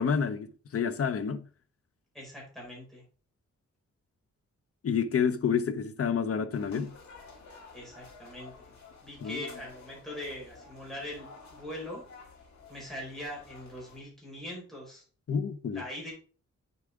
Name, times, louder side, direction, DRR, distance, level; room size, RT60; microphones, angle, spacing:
voice 1, 0.0-1.4 4.8-6.9 9.2-9.5 15.3-15.8, left 6 dB, 50° left, 0.8 m, -29 dB
voice 2, 2.1-3.0 7.7-8.7 9.0-12.0 12.7-15.0 15.7-16.1, left 1 dB, ahead, 4.6 m, -42 dB
sound 1, 6.5-14.0, left 4 dB, 75° left, 3.1 m, -51 dB
8.2 x 7.1 x 3.6 m
wide cardioid pair, 155°, 29 cm